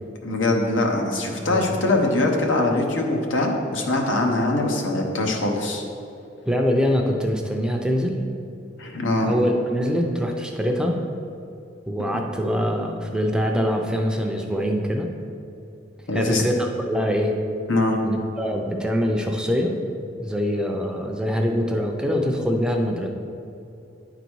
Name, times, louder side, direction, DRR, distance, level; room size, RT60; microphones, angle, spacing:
voice 1, 0.2-5.8 8.8-9.3 16.1-16.4 17.7-18.0, left 2 dB, 85° left, 1 dB, 1.0 m, -22 dB
voice 2, 6.5-8.2 9.3-11.0 11.9-15.1 16.1-17.4 18.0-19.7 20.2-23.1, equal, 5° right, 2 dB, 0.5 m, -24 dB
9.7 x 4.0 x 4.6 m, 2.6 s
head